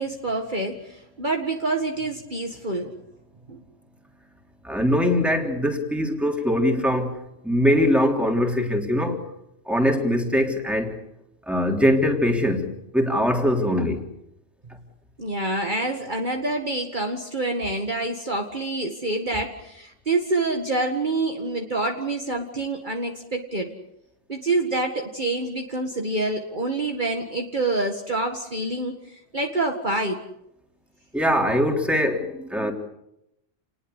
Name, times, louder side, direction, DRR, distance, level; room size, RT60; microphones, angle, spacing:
voice 1, 0.0-2.9 3.5-3.6 15.2-23.8 24.3-30.2, right 2 dB, 40° right, 2.0 m, -27 dB
voice 2, 4.6-7.2 7.4-9.2 9.7-10.9 11.5-14.0 31.1-32.7, equal, ahead, 3.5 m, -22 dB
29.5 x 20.0 x 8.2 m
omnidirectional pair, 1.3 m